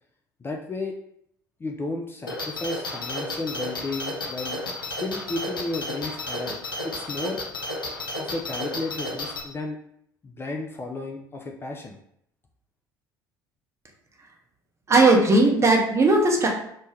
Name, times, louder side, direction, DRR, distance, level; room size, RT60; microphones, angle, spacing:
voice 1, 0.4-1.0 1.6-4.6 5.0-6.6 6.8-7.4 8.2-9.8 10.2-12.0, left 2 dB, 20° left, 1 dB, 0.4 m, -33 dB
sound 1, 2.3-9.4, left 1 dB, 85° left, 0.4 m, -32 dB
voice 2, 14.9-16.5, right 2 dB, 25° right, 0 dB, 0.7 m, -17 dB
3.1 x 2.1 x 3.2 m, 0.72 s
figure-of-eight pair, 60°, 11 cm